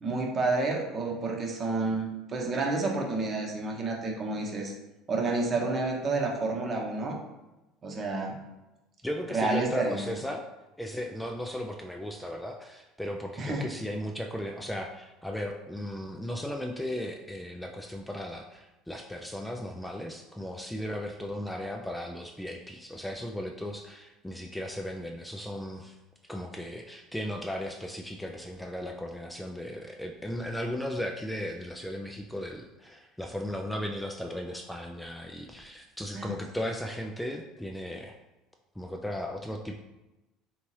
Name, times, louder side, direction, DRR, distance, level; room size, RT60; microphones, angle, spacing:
voice 1, 0.0-4.7 5.1-7.2 7.8-8.4 9.3-10.1 13.4-13.7 36.1-36.3, right 3 dB, 35° right, 0 dB, 0.8 m, -29 dB
voice 2, 9.0-10.4 10.8-26.0 26.3-38.2 38.8-39.8, equal, 5° left, 2 dB, 0.3 m, -36 dB
3.4 x 2.8 x 3.0 m, 1.0 s
hypercardioid pair, 65°, 0 cm